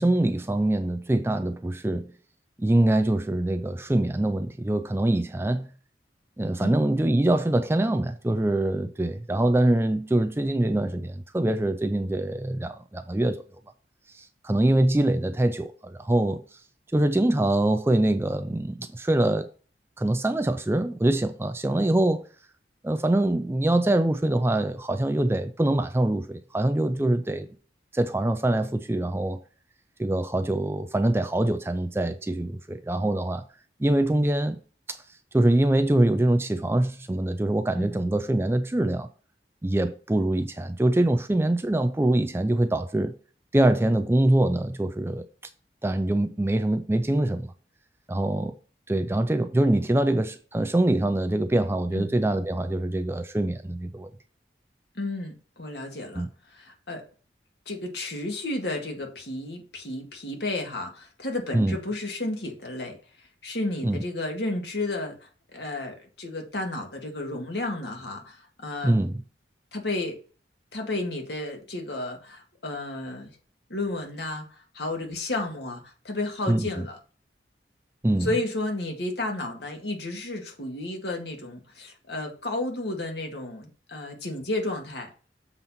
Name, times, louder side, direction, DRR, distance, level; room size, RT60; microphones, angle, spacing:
voice 1, 0.0-2.1 2.6-5.7 6.4-13.4 14.1-16.4 16.9-19.5 20.0-22.2 22.8-27.5 27.9-29.4 30.0-33.4 33.8-34.6 34.9-35.0 35.3-39.1 39.6-43.1 43.5-45.3 45.8-47.5 48.1-48.6 48.9-54.1 56.2-56.3 61.5-61.8 63.8-64.0 68.8-69.2 76.5-76.9 78.0-78.3, right 1 dB, 15° right, 0.4 m, -24 dB
voice 2, 55.0-57.0 57.7-69.1 69.7-70.2 70.7-73.3 73.7-77.0 78.2-85.1, left 2 dB, 65° left, 1.9 m, -32 dB
7.3 x 4.0 x 5.7 m
head